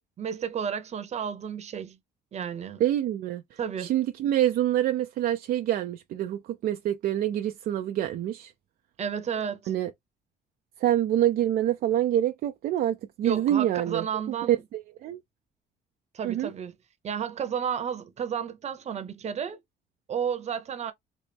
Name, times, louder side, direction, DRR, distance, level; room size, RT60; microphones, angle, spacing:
voice 1, 0.2-2.0 2.3-2.8 3.6-3.9 9.0-9.7 13.2-14.6 16.1-16.7 17.0-19.6 20.1-20.9, right 8 dB, 40° right, 0.8 m, -32 dB
voice 2, 2.8-8.5 9.7-9.9 10.8-15.2 16.2-16.5, right 12 dB, 60° right, 0.4 m, -26 dB
4.1 x 2.0 x 3.4 m
cardioid pair, 110°, 17 cm